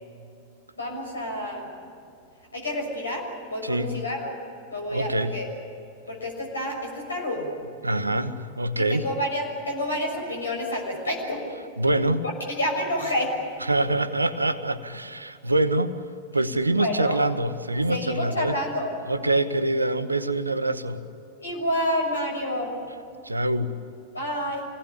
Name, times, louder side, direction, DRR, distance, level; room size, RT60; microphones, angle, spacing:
voice 1, 0.8-1.7 2.5-4.3 4.7-5.5 6.1-7.5 8.8-11.5 12.2-13.4 16.8-17.2 17.9-18.9 21.4-22.8 24.1-24.7, left 1 dB, 75° left, 1 dB, 6.4 m, -29 dB
voice 2, 3.6-4.0 4.9-5.4 7.8-9.1 11.8-12.2 13.7-16.0 16.3-18.6 19.1-21.0 23.2-23.8, right 1 dB, 80° right, 12 dB, 1.1 m, -25 dB
26.5 x 19.0 x 10.0 m, 2.6 s
figure-of-eight pair, 90°, 0 cm